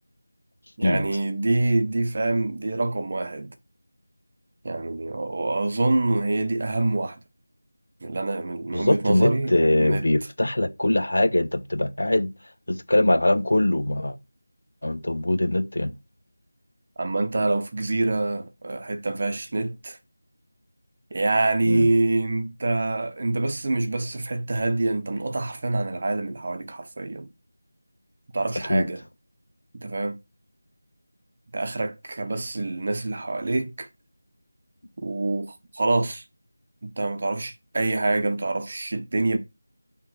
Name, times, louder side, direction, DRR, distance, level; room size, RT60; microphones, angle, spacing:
voice 1, 0.8-3.5 4.6-7.2 8.0-9.5 9.8-10.0 17.0-20.0 21.1-27.3 28.3-29.0 29.8-30.2 31.5-33.9 35.0-36.2 36.8-39.4, right 2 dB, 35° right, 0.8 m, -26 dB
voice 2, 8.7-12.3 12.7-14.1 14.8-15.9 21.7-21.9 28.7-28.9, left 1 dB, 70° left, 1.1 m, -22 dB
6.3 x 3.7 x 4.7 m
figure-of-eight pair, 175°, 0 cm